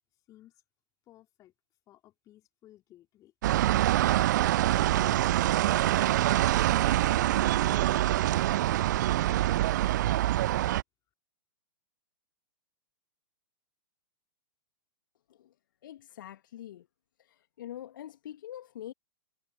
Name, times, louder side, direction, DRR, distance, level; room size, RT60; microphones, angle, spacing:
voice 1, 0.3-0.6 1.1-1.5 1.9-3.3 4.4-6.8 7.4-9.7, left 14 dB, 25° left, 3.3 m, -58 dB
sound 1, 3.4-10.8, right 14 dB, 50° right, 0.4 m, -25 dB
voice 2, 15.8-16.9 17.2-18.9, left 12 dB, 55° left, 1.8 m, -44 dB
figure-of-eight pair, 110°, 12 cm